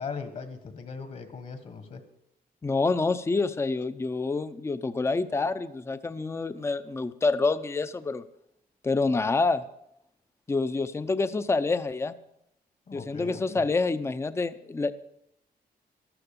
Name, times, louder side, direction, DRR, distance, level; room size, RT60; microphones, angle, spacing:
voice 1, 0.0-2.0 12.9-13.6, left 5 dB, 50° left, 8 dB, 1.5 m, -39 dB
voice 2, 2.6-8.2 8.8-9.6 10.5-12.1 12.9-14.9, left 3 dB, 15° left, 13 dB, 0.5 m, -27 dB
13.0 x 12.5 x 6.9 m, 0.78 s
wide cardioid pair, 165°, 16 cm